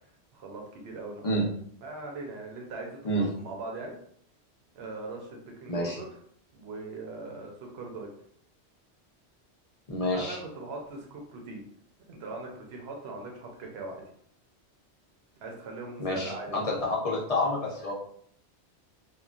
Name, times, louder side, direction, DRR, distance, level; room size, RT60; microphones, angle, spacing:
voice 1, 0.3-1.3 1.8-4.0 4.7-6.0 6.5-8.1 10.1-11.6 12.1-14.0 15.4-16.7, right 3 dB, 70° right, 1 dB, 0.9 m, -40 dB
voice 2, 9.9-10.4 16.0-17.9, left 1 dB, 40° left, -3 dB, 0.6 m, -28 dB
3.0 x 2.3 x 2.4 m, 0.64 s
omnidirectional pair, 1.1 m